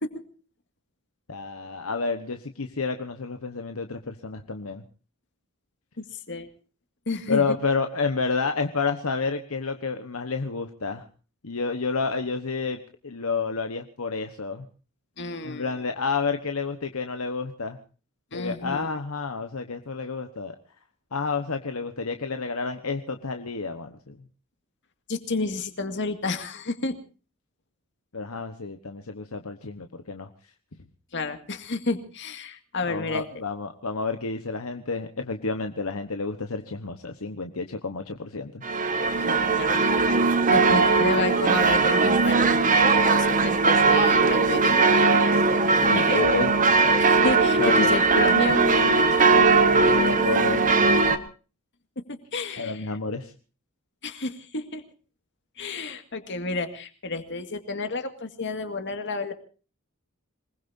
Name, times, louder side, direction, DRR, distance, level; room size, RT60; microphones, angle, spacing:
voice 1, 1.3-4.8 7.3-11.0 11.4-14.7 15.4-17.8 18.3-20.5 21.1-24.2 28.1-30.3 32.9-38.6 45.8-46.5 47.6-48.0 49.7-51.0 52.6-53.3, left 4 dB, 75° left, 6 dB, 1.2 m, -30 dB
voice 2, 6.0-6.5 7.1-7.4 15.2-15.7 18.3-19.0 25.1-27.0 31.1-33.3 39.2-39.9 40.5-45.4 45.9-46.2 47.0-49.5 52.0-52.9 54.0-54.8 55.6-59.3, left 3 dB, 55° left, 7 dB, 2.1 m, -31 dB
sound 1, 38.6-51.2, right 4 dB, 40° right, 1.3 m, -20 dB
27.0 x 20.0 x 2.7 m, 0.37 s
head